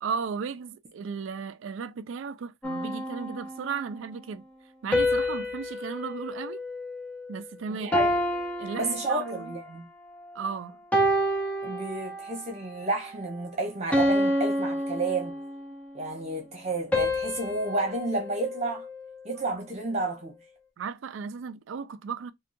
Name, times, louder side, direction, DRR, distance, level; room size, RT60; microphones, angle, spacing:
voice 1, 0.0-4.4 4.8-6.6 7.3-8.0 8.6-9.5 10.3-10.8 20.8-22.3, right 6 dB, 75° right, 0.4 m, -35 dB
sound 1, 2.6-3.9 4.9-7.4 7.9-9.6 10.2-10.4 10.9-12.5 12.9-13.2 13.9-15.8 16.9-19.3, equal, 5° left, 0.7 m, -29 dB
voice 2, 7.7-8.1 8.8-9.9 11.6-15.4 15.9-18.9 19.2-20.4, right 2 dB, 35° right, 1.0 m, -31 dB
3.5 x 2.3 x 2.6 m
head